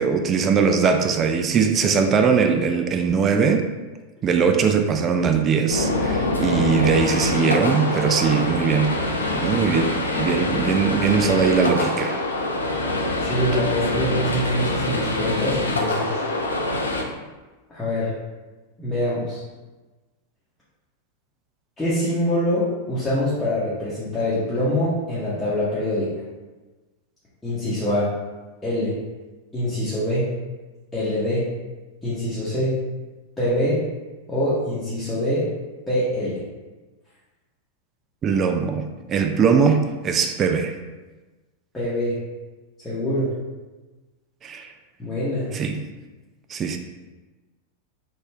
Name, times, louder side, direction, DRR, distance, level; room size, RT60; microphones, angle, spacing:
voice 1, 0.0-3.7 4.2-9.0 9.3-12.2 38.2-40.8 44.4-44.7 45.5-45.8 46.5-46.8, right 6 dB, 25° right, 5 dB, 0.3 m, -21 dB
sound 1, 5.7-17.0, left 2 dB, 75° left, 0.4 m, -24 dB
voice 2, 13.2-16.2 17.7-18.1 18.8-19.4 21.8-26.1 27.4-28.1 28.6-29.0 29.5-30.3 30.9-31.5 32.0-32.8 33.4-33.9 34.3-35.5 35.9-36.4 41.7-42.2 42.8-43.3 45.0-45.5, left 1 dB, 10° left, -12 dB, 1.0 m, -24 dB
4.1 x 2.5 x 3.2 m, 1.2 s
figure-of-eight pair, 90°, 0 cm